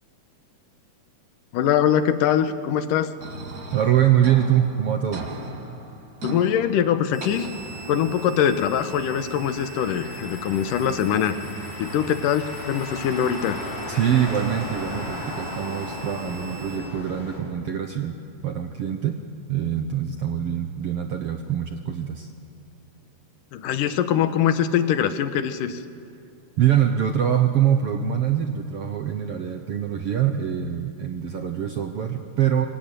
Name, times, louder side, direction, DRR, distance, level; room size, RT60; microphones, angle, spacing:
voice 1, 1.5-3.1 6.2-7.5 7.9-11.4 11.8-13.6 23.5-25.8, left 9 dB, 90° left, 10 dB, 2.7 m, -23 dB
sound 1, 3.2-8.2, right 3 dB, 35° right, 1.8 m, -39 dB
voice 2, 3.7-5.3 13.9-18.2 18.4-19.2 19.5-22.3 26.6-32.7, right 10 dB, 65° right, 5 dB, 1.6 m, -24 dB
sound 2, 7.1-16.8, right 4 dB, 10° left, 7.6 m, -44 dB
Motor vehicle (road), 7.3-17.4, left 1 dB, 45° left, 4.5 m, -36 dB
24.5 x 23.0 x 9.0 m, 2.4 s
omnidirectional pair, 3.7 m